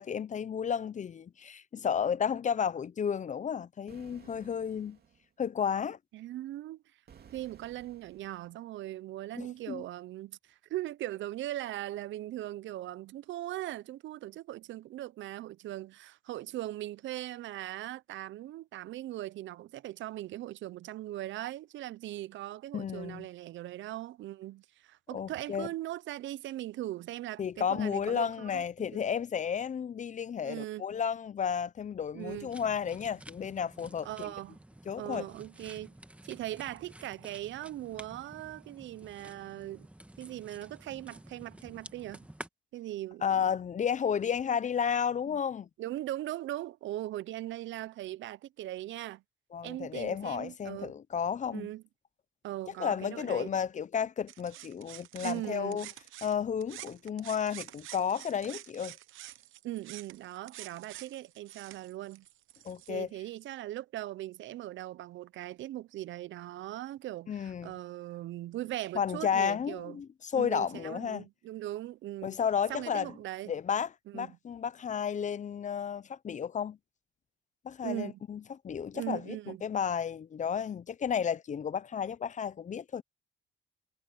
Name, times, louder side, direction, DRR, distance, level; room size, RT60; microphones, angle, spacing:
voice 1, 0.0-5.0 5.4-6.0 9.4-9.8 22.7-23.3 25.1-25.7 27.4-34.3 34.9-35.3 43.2-45.7 49.5-51.7 52.8-55.9 56.2-59.0 62.6-63.1 67.3-67.7 68.9-71.3 72.2-73.1 73.5-76.8 77.6-79.4 79.6-83.0, left 7 dB, 40° left, 0.6 m, -32 dB
sound 1, 3.9-5.3 7.1-8.5, right 7 dB, 55° right, 2.4 m, -56 dB
voice 2, 6.1-6.8 7.3-28.6 28.9-29.0 30.4-30.9 32.1-32.5 34.0-34.6 35.0-35.9 36.2-39.9 40.2-42.3 42.7-43.5 45.3-45.4 45.8-49.2 49.6-50.9 51.5-51.8 52.4-53.5 55.2-55.8 59.6-62.3 62.9-70.0 70.3-72.4 72.7-73.5 74.1-74.3 77.8-78.2 78.9-79.7, right 14 dB, 75° right, 0.5 m, -40 dB
sound 2, 32.2-42.5, right 1 dB, 5° right, 1.5 m, -51 dB
sound 3, 54.3-56.4 56.6-62.9, right 15 dB, 90° right, 1.0 m, -48 dB
cardioid pair, 90°, 20 cm